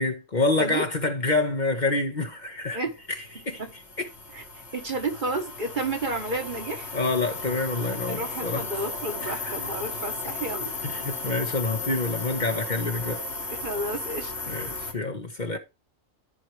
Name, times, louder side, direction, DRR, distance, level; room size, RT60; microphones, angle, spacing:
voice 1, 0.0-2.8 3.1-3.2 3.4-3.6 4.0-4.1 6.9-8.6 9.2-9.6 10.8-13.2 14.5-15.6, left 3 dB, 40° left, 1.1 m, -27 dB
sound 1, 2.7-14.9, left 3 dB, 60° left, 2.3 m, -35 dB
voice 2, 4.3-6.9 8.1-10.7 13.6-14.3 15.5-15.6, right 2 dB, 40° right, 1.5 m, -31 dB
13.5 x 4.6 x 3.0 m
omnidirectional pair, 1.3 m